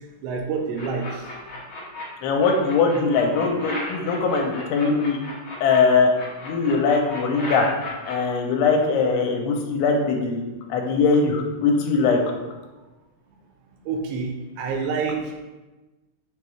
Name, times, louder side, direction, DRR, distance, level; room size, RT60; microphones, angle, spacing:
voice 1, 0.2-1.3 13.9-14.3 14.6-15.4, right 5 dB, 85° right, 1 dB, 2.6 m, -27 dB
sound 1, 0.7-2.0 2.4-5.8 6.1-8.1, left 2 dB, 70° left, 1.2 m, -36 dB
voice 2, 2.2-5.2 5.6-6.1 6.4-7.7 8.1-10.4 10.7-12.2, left 4 dB, 85° left, 2 dB, 2.6 m, -21 dB
6.5 x 2.3 x 3.1 m, 1.1 s
omnidirectional pair, 4.8 m